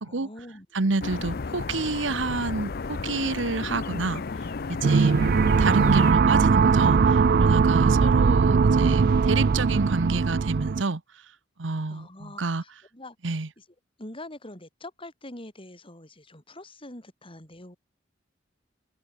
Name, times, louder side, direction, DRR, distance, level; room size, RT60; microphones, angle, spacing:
voice 1, 0.0-0.9 11.9-13.2 13.6-13.7 14.0-17.8, left 1 dB, 30° left, 7.8 m, -44 dB
voice 2, 0.7-11.2 11.6-12.6 13.2-13.5, right 3 dB, 90° right, 1.1 m, -29 dB
sound 1, 1.0-6.1, left 4 dB, 55° left, 0.6 m, -33 dB
sound 2, 4.8-10.8, right 5 dB, 55° right, 0.4 m, -20 dB
head